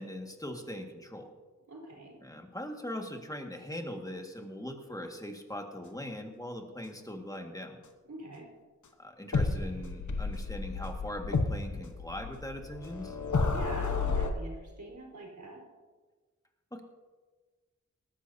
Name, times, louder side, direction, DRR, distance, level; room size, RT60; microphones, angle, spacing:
voice 1, 0.0-1.3 2.2-7.8 9.0-13.2 16.7-16.8, left 1 dB, 10° left, 3 dB, 1.8 m, -41 dB
voice 2, 1.7-2.2 8.1-8.5 13.4-15.6, right 2 dB, 70° right, -3 dB, 4.0 m, -44 dB
sound 1, 9.3-14.3, left 4 dB, 75° left, 1.2 m, -31 dB
19.0 x 14.0 x 2.8 m, 1.3 s
wide cardioid pair, 55°, 30 cm